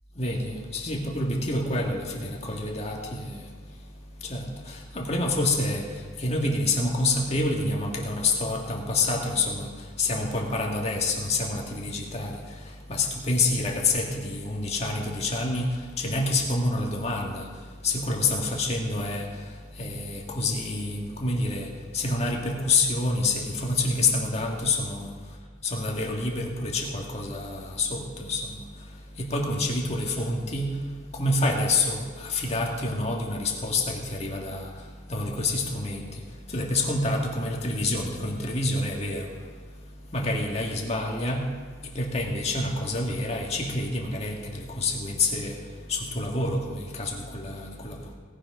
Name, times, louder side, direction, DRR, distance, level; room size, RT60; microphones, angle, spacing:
voice 1, 0.1-48.1, left 2 dB, 35° left, 0 dB, 1.8 m, -28 dB
18.0 x 6.4 x 5.3 m, 1.5 s
head